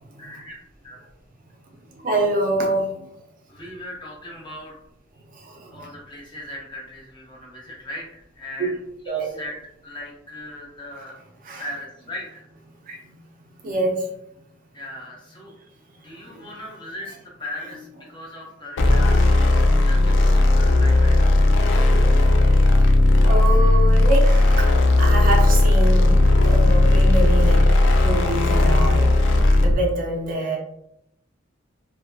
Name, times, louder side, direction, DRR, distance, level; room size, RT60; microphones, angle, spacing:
voice 1, 0.2-0.6 0.8-1.1 3.5-4.7 5.7-8.8 9.1-11.2 11.6-12.4 14.7-15.5 16.0-21.5 30.4-30.5, left 1 dB, 25° left, -3 dB, 0.6 m, -38 dB
voice 2, 1.9-2.8 5.3-5.9 8.6-8.7 9.1-9.3 11.4-11.6 12.9-13.1 13.6-14.1 16.2-16.5 23.2-27.6 28.0-29.1 29.6-30.6, right 1 dB, 45° right, 1 dB, 0.5 m, -25 dB
sound 1, 18.8-29.8, left 2 dB, 70° left, 0.3 m, -16 dB
2.7 x 2.1 x 2.2 m, 0.79 s
head